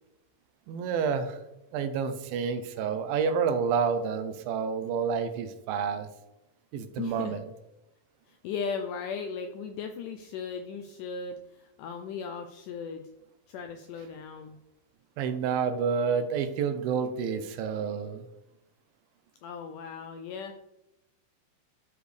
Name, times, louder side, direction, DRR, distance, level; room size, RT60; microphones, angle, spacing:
voice 1, 0.7-1.4 1.7-6.1 6.7-7.4 15.2-18.2, right 6 dB, 80° right, 9 dB, 2.4 m, -29 dB
voice 2, 7.0-7.4 8.3-13.1 13.5-14.6 19.4-20.6, left 6 dB, 85° left, 6 dB, 1.8 m, -37 dB
12.5 x 5.0 x 3.2 m, 0.90 s
omnidirectional pair, 4.3 m